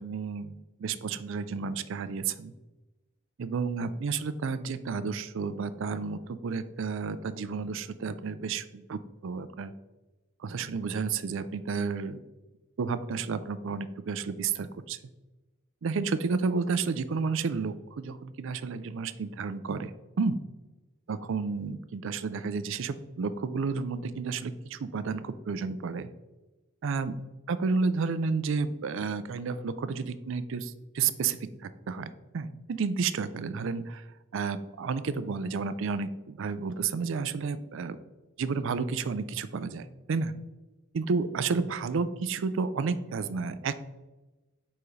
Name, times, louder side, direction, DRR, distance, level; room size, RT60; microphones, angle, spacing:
voice 1, 0.0-2.5 3.4-9.7 10.4-12.2 12.8-15.0 15.8-19.9 20.2-20.4 21.1-26.1 26.8-27.1 27.5-34.1 34.3-38.0 38.4-40.3 40.9-43.9, right 5 dB, 65° right, 13 dB, 0.4 m, -31 dB
7.0 x 4.9 x 3.2 m, 1.1 s
head